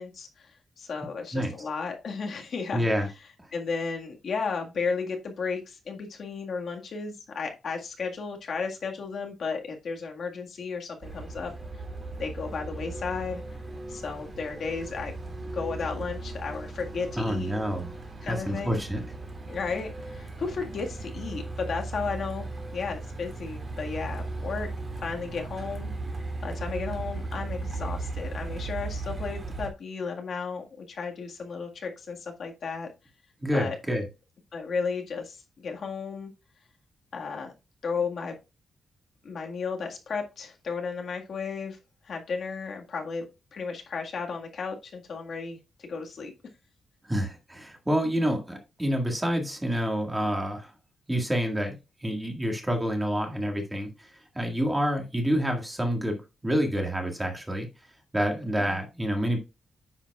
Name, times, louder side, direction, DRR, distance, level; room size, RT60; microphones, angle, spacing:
voice 1, 0.0-2.9 3.5-11.8 12.2-13.4 13.9-15.1 15.4-17.5 18.2-18.8 19.5-24.7 25.0-25.9 26.4-32.9 33.5-33.7 34.5-36.3 37.1-37.5 37.8-38.4 39.2-41.8 42.0-43.2 43.5-46.3 58.5-58.8, left 5 dB, 50° left, 2 dB, 1.7 m, -34 dB
voice 2, 2.7-3.1 17.2-18.0 18.3-19.0 33.4-34.0 47.0-50.7 51.1-51.7 52.0-56.2 56.4-57.7 58.1-59.4, equal, 10° right, 3 dB, 1.8 m, -28 dB
Truck, 11.0-29.7, right 2 dB, 30° right, 2.5 m, -37 dB
9.9 x 7.2 x 2.4 m, 0.26 s
wide cardioid pair, 165°, 0 cm